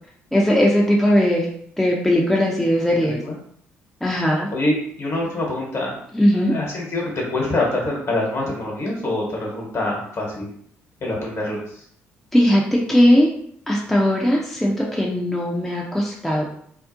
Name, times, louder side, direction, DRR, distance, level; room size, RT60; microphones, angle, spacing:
voice 1, 0.3-1.5 1.8-3.2 4.0-4.5 6.1-6.5 12.3-13.3 13.7-16.4, equal, 5° left, -3 dB, 0.5 m, -18 dB
voice 2, 3.0-3.4 4.5-6.0 6.3-10.5 11.0-11.8, left 2 dB, 50° left, -2 dB, 1.1 m, -25 dB
2.5 x 2.0 x 2.6 m, 0.64 s
hypercardioid pair, 45°, 6 cm